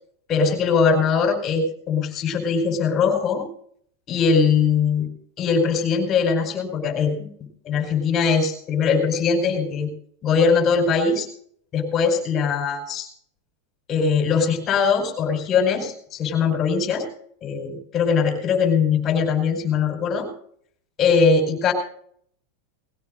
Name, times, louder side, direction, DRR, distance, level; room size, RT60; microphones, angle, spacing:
voice 1, 0.3-3.5 4.1-5.1 5.4-7.3 7.6-9.9 10.2-11.3 11.7-13.1 13.9-17.0 17.4-20.3 21.0-21.7, left 5 dB, 30° left, 4 dB, 4.9 m, -21 dB
20.0 x 16.5 x 2.6 m, 0.63 s
supercardioid pair, 150°, 0 cm